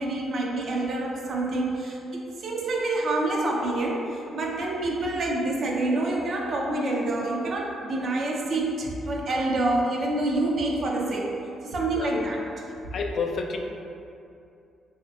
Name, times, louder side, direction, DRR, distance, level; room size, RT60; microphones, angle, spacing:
voice 1, 0.0-11.4 11.6-12.4, right 2 dB, 55° right, -2 dB, 0.5 m, -27 dB
voice 2, 12.0-12.4 12.9-13.6, left 4 dB, 60° left, 2 dB, 0.3 m, -29 dB
3.2 x 2.8 x 2.4 m, 2.6 s
cardioid pair, 90°, 0 cm